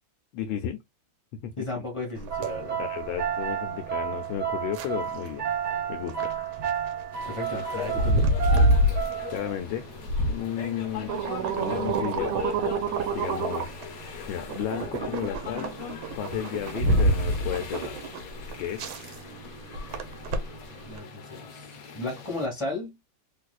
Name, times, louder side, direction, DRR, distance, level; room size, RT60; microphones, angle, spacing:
voice 1, 0.3-0.8 1.4-1.8 2.8-5.5 5.9-6.3 9.3-9.8 10.2-11.2 11.5-12.4 13.1-13.7 14.3-15.7 16.2-18.1 18.6-18.9, left 10 dB, 85° left, 1.4 m, -33 dB
voice 2, 1.6-2.8 7.3-8.3 20.8-23.0, left 2 dB, 20° left, 1.1 m, -34 dB
sound 1, 2.2-21.0, right 1 dB, 85° right, 1.4 m, -28 dB
sound 2, 2.3-9.6, right 9 dB, 60° right, 1.4 m, -32 dB
sound 3, 7.1-22.5, left 7 dB, 60° left, 1.0 m, -41 dB
3.3 x 3.0 x 2.3 m
omnidirectional pair, 2.1 m